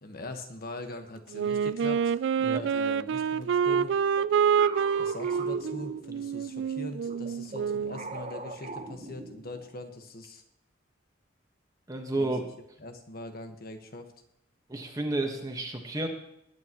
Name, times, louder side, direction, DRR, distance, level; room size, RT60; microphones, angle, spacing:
voice 1, 0.0-2.1 2.5-3.9 5.0-10.4 12.1-12.3 12.8-14.1, left 2 dB, 50° left, 6 dB, 1.4 m, -41 dB
Wind instrument woodwind instrument, 1.3-8.0, right 7 dB, 65° right, 0.3 m, -27 dB
sound 1, 3.7-6.4 7.0-9.7, right 3 dB, 40° right, 1.0 m, -42 dB
voice 2, 11.9-12.5 14.7-16.1, right 2 dB, 20° right, 3 dB, 1.3 m, -31 dB
20.5 x 9.5 x 3.0 m, 0.78 s
head